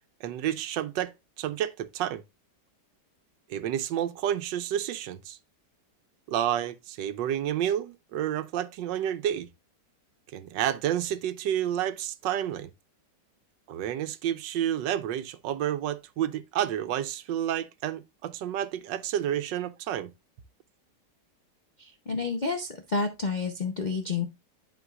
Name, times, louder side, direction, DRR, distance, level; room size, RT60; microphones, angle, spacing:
voice 1, 0.2-2.2 3.5-5.4 6.3-9.5 10.3-12.7 13.7-20.1, right 10 dB, 85° right, 1.3 m, -30 dB
voice 2, 21.8-24.3, left 4 dB, 55° left, 0.4 m, -30 dB
11.0 x 4.5 x 2.3 m
omnidirectional pair, 1.9 m